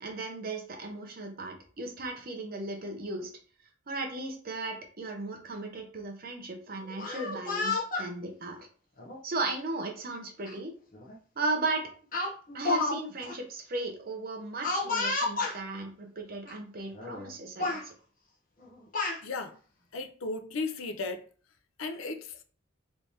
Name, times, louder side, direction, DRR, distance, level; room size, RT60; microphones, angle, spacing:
voice 1, 0.0-3.3 3.9-8.6 9.2-10.7 11.4-11.9 12.5-17.9, right 2 dB, 45° right, 0.7 m, -36 dB
Speech, 6.9-8.1 9.0-9.2 10.5-10.6 10.9-11.2 12.1-13.0 13.2-13.3 14.6-15.6 16.5-16.6 16.9-17.3 17.6-17.8 18.6-19.2, left 3 dB, 40° left, 0.9 m, -31 dB
voice 2, 19.2-19.6 19.9-21.2 21.8-22.4, left 3 dB, 75° left, 0.5 m, -35 dB
3.3 x 3.2 x 2.8 m
head